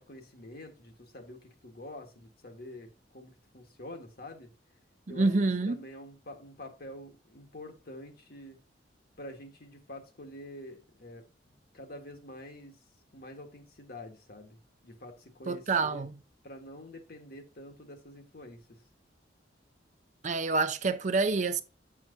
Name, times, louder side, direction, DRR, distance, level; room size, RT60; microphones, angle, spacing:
voice 1, 0.0-4.5 5.1-5.3 5.7-8.6 9.2-12.8 13.1-16.0 16.4-18.6, left 1 dB, 55° left, 1.5 m, -47 dB
voice 2, 5.1-5.8 15.5-16.1 20.2-21.6, right 3 dB, 40° right, 0.5 m, -27 dB
7.2 x 5.8 x 2.6 m
head